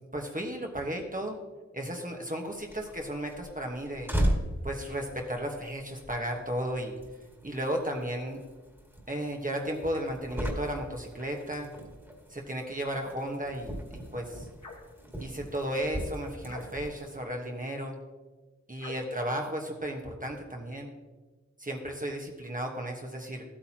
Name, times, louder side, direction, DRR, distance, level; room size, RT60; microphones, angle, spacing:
voice 1, 0.1-1.4 1.7-4.1 4.6-6.9 7.4-8.4 9.1-11.7 12.3-14.5 15.2-18.0 18.7-20.9 21.6-23.4, right 1 dB, 30° right, 1 dB, 1.3 m, -34 dB
sound 1, 2.5-17.2, equal, 10° right, 2.1 m, -38 dB
sound 2, 14.6-15.0 16.4-17.0 18.8-19.2, left 3 dB, 85° left, 1.9 m, -45 dB
14.5 x 8.7 x 2.9 m, 1.2 s
wide cardioid pair, 55°, 29 cm